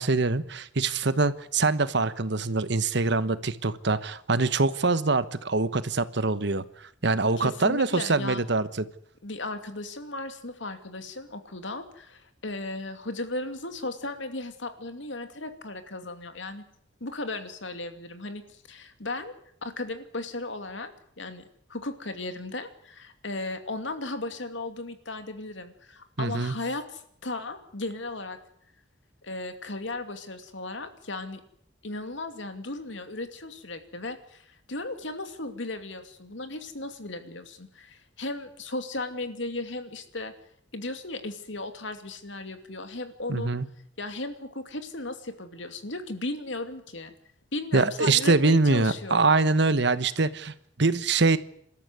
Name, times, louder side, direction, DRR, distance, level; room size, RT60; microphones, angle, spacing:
voice 1, 0.0-6.6 7.0-8.9 26.2-26.5 43.3-43.7 47.7-51.4, right 3 dB, 60° right, 14 dB, 1.2 m, -24 dB
voice 2, 7.4-8.4 9.2-16.6 17.0-19.3 19.6-21.4 21.7-28.4 29.2-31.4 31.8-40.3 40.7-43.5 44.0-47.1 47.5-49.4, left 2 dB, 70° left, 8 dB, 2.6 m, -36 dB
27.5 x 13.0 x 9.7 m, 0.70 s
head